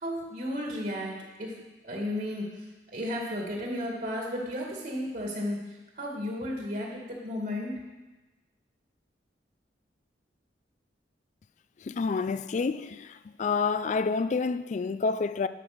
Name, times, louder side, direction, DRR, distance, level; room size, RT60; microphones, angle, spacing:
voice 1, 0.0-1.5 1.8-2.4 2.9-5.6 6.0-7.7, left 1 dB, 55° right, 2.1 m, -33 dB
voice 2, 11.8-15.5, left 4 dB, 45° left, 0.4 m, -28 dB
12.0 x 6.2 x 6.0 m
head